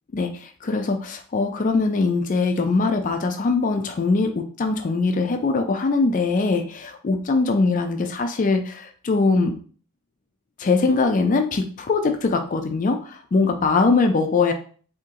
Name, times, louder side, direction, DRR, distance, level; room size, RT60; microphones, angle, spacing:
voice 1, 0.1-9.6 10.6-14.5, left 3 dB, 35° left, 6 dB, 0.3 m, -22 dB
3.7 x 2.8 x 2.7 m, 0.43 s
head